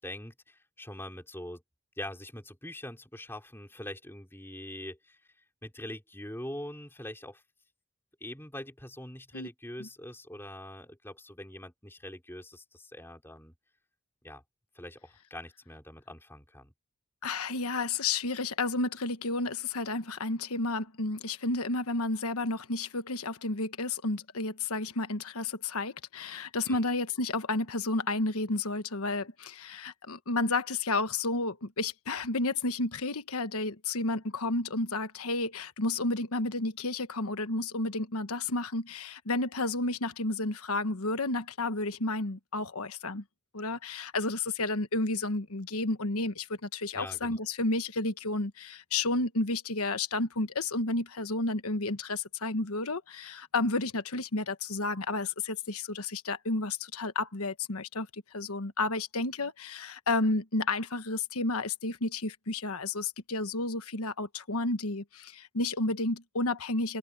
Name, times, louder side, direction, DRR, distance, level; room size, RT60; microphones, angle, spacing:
voice 1, 0.0-1.6 2.0-5.2 5.6-7.4 8.2-13.5 14.2-14.4 14.7-16.7 26.7-26.8 46.9-47.4, left 1 dB, 10° left, 4.7 m, -43 dB
voice 2, 17.2-43.2 43.5-67.0, left 2 dB, 85° left, 1.3 m, -31 dB
head